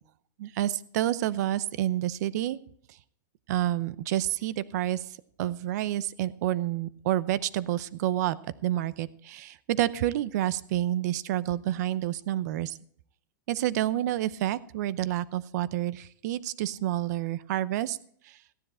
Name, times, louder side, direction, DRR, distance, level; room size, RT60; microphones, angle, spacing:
voice 1, 0.4-2.6 3.5-5.0 5.4-8.4 8.6-12.7 13.5-18.0, right 13 dB, 55° right, 17 dB, 0.7 m, -29 dB
15.5 x 10.0 x 4.3 m, 0.62 s
supercardioid pair, 155°, 11 cm